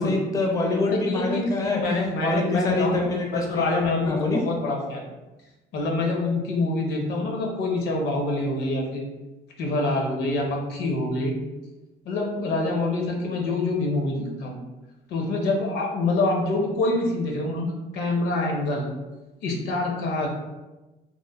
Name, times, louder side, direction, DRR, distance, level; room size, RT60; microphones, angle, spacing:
voice 1, 0.0-1.8 2.2-4.4, left 2 dB, 20° left, 0 dB, 0.4 m, -25 dB
voice 2, 0.9-3.0 3.3-5.1 5.7-9.0 9.6-11.4 12.0-14.6 15.1-18.9 19.4-20.3, left 2 dB, 75° left, 0 dB, 0.6 m, -26 dB
3.0 x 2.1 x 2.2 m, 1.1 s
cardioid pair, 110°, 17 cm